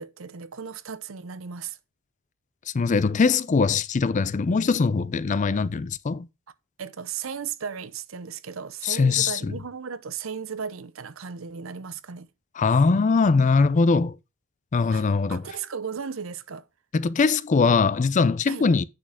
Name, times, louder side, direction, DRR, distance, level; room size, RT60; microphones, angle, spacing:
voice 1, 0.0-1.8 6.8-12.3 14.9-16.7 18.5-18.7, right 6 dB, 70° right, 0.7 m, -36 dB
voice 2, 2.7-6.3 8.8-9.5 12.6-14.2 14.7-15.4 16.9-18.8, left 4 dB, 35° left, 0.4 m, -21 dB
8.7 x 6.2 x 3.6 m
head